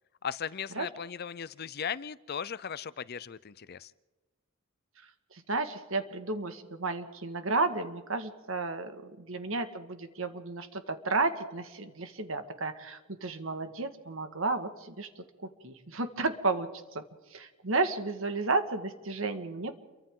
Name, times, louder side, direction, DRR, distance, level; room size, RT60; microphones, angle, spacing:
voice 1, 0.2-3.9, left 7 dB, 50° left, 18 dB, 0.6 m, -37 dB
voice 2, 5.3-15.2 15.6-17.0 17.3-19.8, right 3 dB, 70° right, 8 dB, 1.8 m, -32 dB
29.0 x 23.5 x 3.8 m, 1.2 s
head